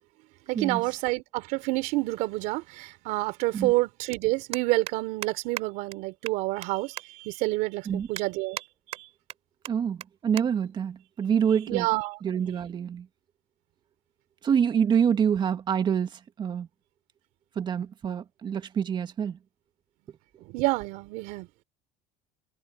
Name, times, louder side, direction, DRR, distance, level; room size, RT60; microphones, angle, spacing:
voice 1, 0.5-9.1 11.7-12.2 20.5-21.5, right 22 dB, 75° right, 3.8 m, -28 dB
sound 1, 4.1-4.2 4.5-4.9 5.2-5.3 5.6-5.7 5.9-6.0 6.3-6.7 7.0-7.1 7.5-7.6 8.2-8.7 8.9-9.4 9.7-9.8 10.0-10.1 10.4-10.5 10.8-11.0 11.8-12.0, right 12 dB, 55° right, 2.9 m, -37 dB
voice 2, 9.7-11.9 12.2-13.1 14.4-16.7 17.6-19.4, right 7 dB, 35° right, 2.0 m, -26 dB
supercardioid pair, 115°, 13 cm